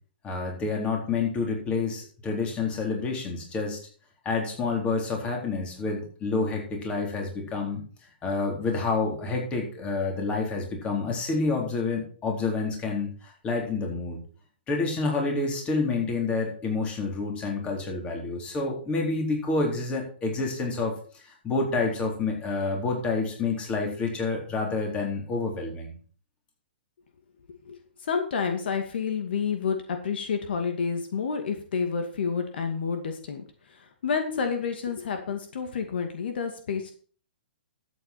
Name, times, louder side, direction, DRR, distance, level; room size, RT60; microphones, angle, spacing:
voice 1, 0.2-3.8 4.2-7.8 8.2-14.2 14.7-25.9, left 3 dB, 20° left, 1 dB, 3.9 m, -28 dB
voice 2, 27.7-36.9, left 6 dB, 70° left, 6 dB, 2.4 m, -29 dB
12.5 x 8.5 x 4.5 m, 0.42 s
hypercardioid pair, 145°, 6 cm